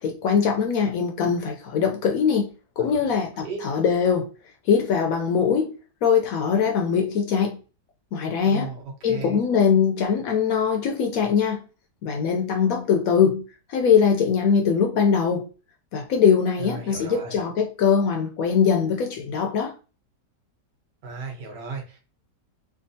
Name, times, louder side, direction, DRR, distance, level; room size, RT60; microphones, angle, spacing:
voice 1, 0.0-2.5 2.8-4.3 4.7-5.7 6.0-7.6 8.1-8.7 9.0-11.6 12.0-13.4 13.7-15.5 15.9-19.7, left 6 dB, 70° left, 0.8 m, -22 dB
voice 2, 2.9-3.6 8.4-9.4 16.6-17.4 21.0-22.0, right 3 dB, 85° right, 1.6 m, -35 dB
3.5 x 2.4 x 2.6 m
omnidirectional pair, 1.8 m